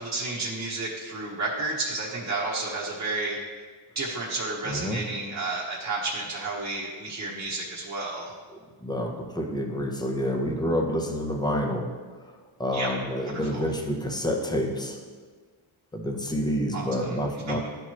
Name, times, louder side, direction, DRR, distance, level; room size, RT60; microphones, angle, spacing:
voice 1, 0.0-3.4 3.9-8.3 12.7-12.9 13.2-13.6 16.7-17.2 17.5-17.6, right 3 dB, 35° right, -5 dB, 1.0 m, -31 dB
voice 2, 4.6-5.0 8.8-11.9 12.6-15.0 15.9-17.7, equal, 10° left, 2 dB, 0.7 m, -28 dB
12.0 x 4.6 x 3.0 m, 1.5 s
wide cardioid pair, 145°, 48 cm